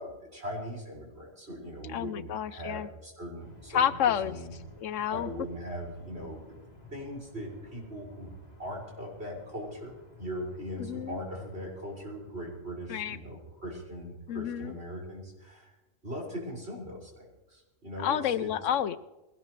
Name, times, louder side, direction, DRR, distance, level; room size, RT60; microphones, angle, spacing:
voice 1, 0.0-3.9 4.2-4.5 5.1-6.5 6.9-8.3 8.6-9.9 10.2-15.8 16.0-18.5, equal, 55° right, -3 dB, 6.3 m, -40 dB
voice 2, 1.9-2.9 3.7-4.4 4.8-5.3 10.8-11.2 12.9-13.2 14.3-14.7 18.0-19.0, left 9 dB, 80° left, 14 dB, 1.0 m, -29 dB
sound 1, 3.4-13.7, left 3 dB, 30° left, 4.7 m, -55 dB
21.0 x 19.0 x 3.3 m, 1.1 s
omnidirectional pair, 1.3 m